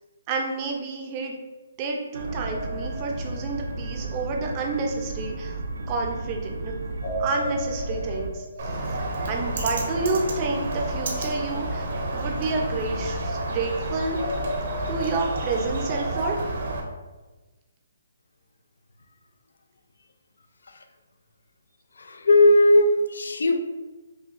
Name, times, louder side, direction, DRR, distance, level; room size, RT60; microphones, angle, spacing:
voice 1, 0.3-1.4 1.8-5.6 5.9-6.7 7.2-8.4 9.0-14.2 14.9-16.4, right 3 dB, 25° right, 1 dB, 0.5 m, -29 dB
sound 1, 2.1-8.3, right 2 dB, 85° right, 0.6 m, -34 dB
sound 2, 2.2-4.3 7.0-9.9 14.1-16.4, equal, 55° left, 0.9 m, -36 dB
Bird, 8.6-16.8, right 2 dB, 55° right, 0.8 m, -30 dB
voice 2, 22.0-23.6, left 1 dB, 85° left, 7 dB, 0.4 m, -18 dB
5.4 x 2.2 x 2.5 m, 1.2 s
hypercardioid pair, 165°, 0 cm